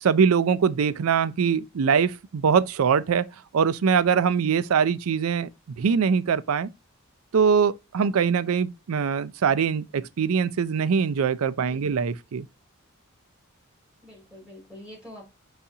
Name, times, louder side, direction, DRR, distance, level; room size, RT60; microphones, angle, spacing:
voice 1, 0.0-3.3 3.5-5.5 5.8-6.7 7.3-12.5, right 6 dB, 80° right, 0.4 m, -22 dB
voice 2, 11.6-12.0 14.0-15.3, left 1 dB, 5° right, 3.1 m, -46 dB
4.7 x 4.1 x 2.7 m
head